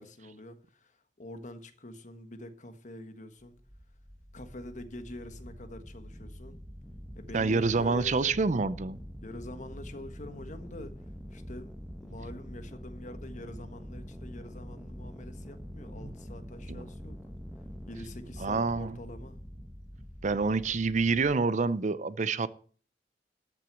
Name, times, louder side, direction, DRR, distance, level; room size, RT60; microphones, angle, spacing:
voice 1, 0.0-3.6 4.3-6.6 7.1-8.3 9.2-11.0 11.3-11.7 12.0-17.2 17.9-19.4, left 1 dB, 45° left, 1.4 m, -45 dB
sound 1, 3.4-21.4, equal, ahead, 1.1 m, -45 dB
voice 2, 7.3-9.0 16.0-16.1 16.7-16.8 18.4-18.9 20.2-22.5, right 4 dB, 45° right, 0.5 m, -27 dB
13.0 x 6.1 x 7.7 m
head